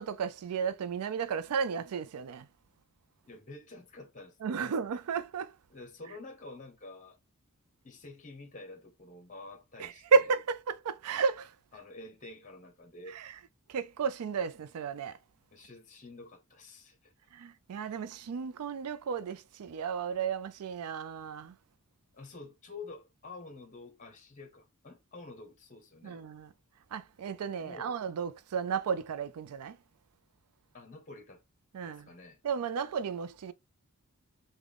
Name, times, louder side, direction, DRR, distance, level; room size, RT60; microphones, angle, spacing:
voice 1, 0.0-2.5 4.4-5.5 9.8-11.5 13.1-13.4 13.7-15.2 17.3-21.6 26.0-26.5 26.9-29.8 31.7-32.1 32.4-33.5, right 6 dB, 85° right, 0.4 m, -33 dB
voice 2, 3.2-4.7 5.7-7.2 7.8-10.3 11.7-13.2 15.5-17.1 22.1-26.2 27.6-27.9 30.7-31.4 31.8-32.4, left 2 dB, 35° left, 0.9 m, -48 dB
3.6 x 2.2 x 3.3 m
head